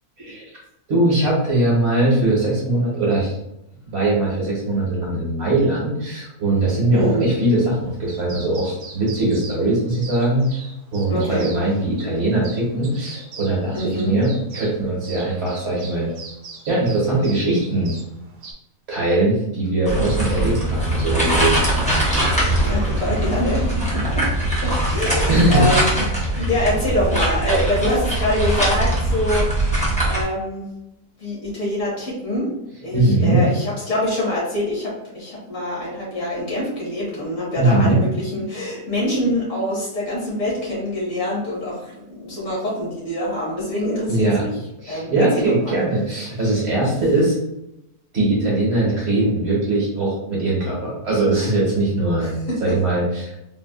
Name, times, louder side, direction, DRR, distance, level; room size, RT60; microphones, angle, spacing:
voice 1, 0.9-3.4 3.8-10.5 10.9-16.1 16.7-18.0 18.9-21.9 25.1-25.7 32.9-33.4 37.6-38.0 44.1-44.4 44.8-47.4 48.1-53.3, right 2 dB, 50° right, -5 dB, 1.1 m, -20 dB
voice 2, 6.9-7.3 11.1-11.5 13.7-14.1 22.6-24.3 24.6-30.7 31.2-32.5 32.8-44.6 44.9-45.2 45.4-45.8 52.2-52.8, left 1 dB, 55° left, -6 dB, 1.6 m, -25 dB
sound 1, 7.2-18.5, right 3 dB, 65° right, 0.8 m, -42 dB
sound 2, 19.9-30.2, right 1 dB, 10° left, 0.4 m, -21 dB
3.9 x 2.3 x 2.3 m, 0.84 s
omnidirectional pair, 1.6 m